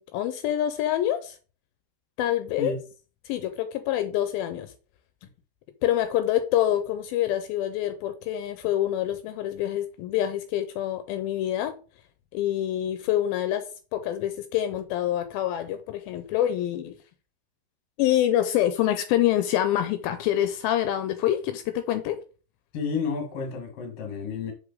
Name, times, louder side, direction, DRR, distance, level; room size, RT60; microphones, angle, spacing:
voice 1, 0.0-1.4 2.2-2.7 3.3-4.7 5.8-11.8 12.3-16.9 18.0-22.2, left 12 dB, 85° left, 2.3 m, -26 dB
voice 2, 22.7-24.5, left 5 dB, 55° left, 2.1 m, -30 dB
6.3 x 5.0 x 3.8 m
omnidirectional pair, 4.4 m